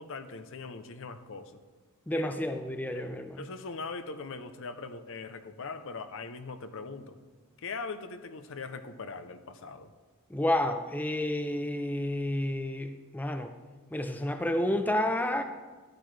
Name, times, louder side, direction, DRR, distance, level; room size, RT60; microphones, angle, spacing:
voice 1, 0.0-1.6 2.1-2.3 2.9-3.1 3.4-7.2 7.6-9.9, left 4 dB, 65° left, 9 dB, 0.7 m, -41 dB
voice 2, 2.1-3.5 10.3-13.5 13.9-15.4, left 1 dB, 10° left, 7 dB, 0.4 m, -30 dB
13.0 x 9.8 x 3.3 m, 1.4 s
head